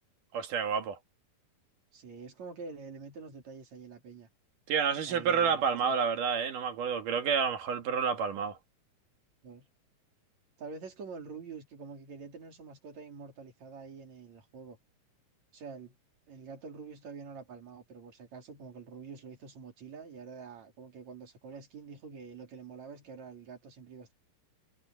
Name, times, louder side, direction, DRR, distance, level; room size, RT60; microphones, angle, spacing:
voice 1, 0.3-1.0 4.7-8.6, right 6 dB, 70° right, 3.6 m, -29 dB
voice 2, 1.9-4.3 5.1-6.0 9.4-9.7 10.6-14.8 15.5-16.0 16.3-24.1, right 5 dB, 55° right, 4.5 m, -46 dB
omnidirectional pair, 3.9 m